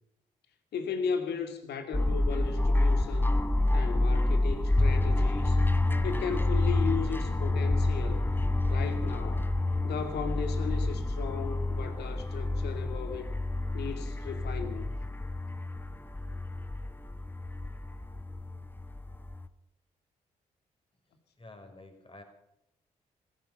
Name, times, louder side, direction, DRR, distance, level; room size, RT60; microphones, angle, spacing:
voice 1, 0.7-3.4 3.7-5.6 6.0-8.3 8.7-9.5 9.8-13.3 13.7-14.9, left 6 dB, 70° left, 7 dB, 2.4 m, -36 dB
sound 1, 1.9-19.5, left 2 dB, 10° left, 1.4 m, -28 dB
voice 2, 21.4-22.2, left 2 dB, 30° left, 5 dB, 5.1 m, -49 dB
16.5 x 16.0 x 5.6 m, 0.80 s
hypercardioid pair, 45°, 18 cm